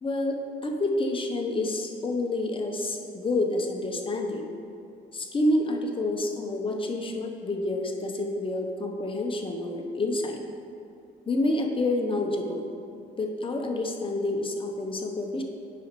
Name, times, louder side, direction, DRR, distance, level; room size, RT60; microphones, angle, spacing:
voice 1, 0.0-4.5 5.1-10.4 11.3-12.7 13.2-15.4, left 2 dB, 25° left, 3 dB, 0.8 m, -28 dB
9.0 x 5.3 x 3.1 m, 2.5 s
cardioid pair, 90°, 20 cm